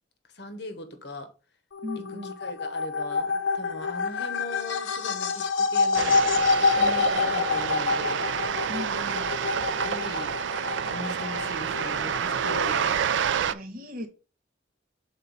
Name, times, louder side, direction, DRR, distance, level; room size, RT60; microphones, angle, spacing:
voice 1, 0.3-1.3 1.9-6.2 6.7-8.3 9.8-10.4 10.8-12.9, left 1 dB, 60° left, 1.0 m, -39 dB
sound 1, 1.7-13.0, left 4 dB, 80° left, 0.6 m, -27 dB
voice 2, 1.8-2.3 8.7-9.3 13.5-14.1, left 1 dB, 45° right, 1.2 m, -37 dB
sound 2, 5.9-13.5, right 8 dB, 70° right, 0.4 m, -28 dB
6.6 x 4.1 x 4.0 m
head